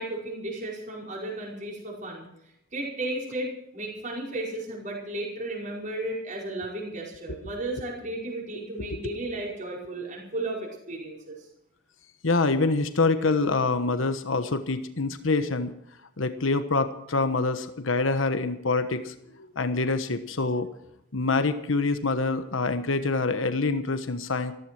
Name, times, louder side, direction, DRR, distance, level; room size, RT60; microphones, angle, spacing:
voice 1, 0.0-2.3 2.7-11.5, right 1 dB, 40° right, -2 dB, 5.0 m, -34 dB
voice 2, 12.2-15.7 16.2-20.7 21.1-24.5, left 3 dB, 80° left, 10 dB, 1.2 m, -26 dB
15.0 x 14.0 x 6.2 m, 0.77 s
head